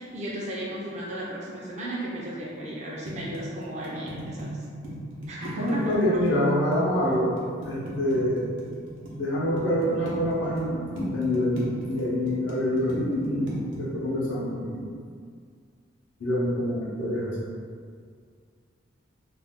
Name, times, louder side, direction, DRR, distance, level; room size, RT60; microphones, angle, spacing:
voice 1, 0.0-4.6 5.3-6.7, right 1 dB, 35° right, -5 dB, 0.4 m, -35 dB
sound 1, 3.1-9.1 9.6-10.7 11.0-13.8, right 1 dB, 80° right, 0.7 m, -38 dB
voice 2, 5.4-7.3 7.6-8.5 9.1-14.8 16.2-17.5, equal, 70° left, -6 dB, 0.6 m, -26 dB
2.5 x 2.3 x 3.5 m, 2.1 s
head